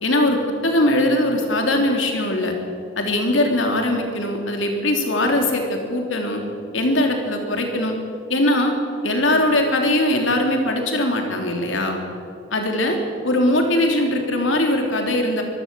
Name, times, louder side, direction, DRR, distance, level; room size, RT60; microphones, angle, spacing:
voice 1, 0.0-2.5 3.0-6.4 6.7-7.9 8.3-8.7 9.0-12.0 12.5-13.0 13.2-15.4, left 1 dB, 75° left, 3 dB, 3.4 m, -20 dB
24.0 x 14.0 x 7.6 m, 2.5 s
head